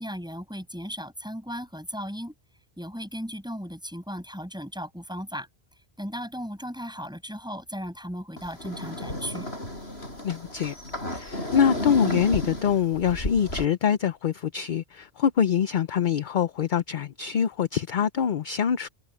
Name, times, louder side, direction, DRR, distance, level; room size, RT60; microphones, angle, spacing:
voice 1, 0.0-2.3 2.8-5.5 6.0-9.5, equal, 5° right, 7.7 m, -36 dB
sound 1, 8.4-13.7, left 1 dB, 80° left, 8.4 m, -32 dB
voice 2, 10.2-10.7 11.1-18.9, left 8 dB, 55° left, 0.7 m, -24 dB
omnidirectional pair, 1.1 m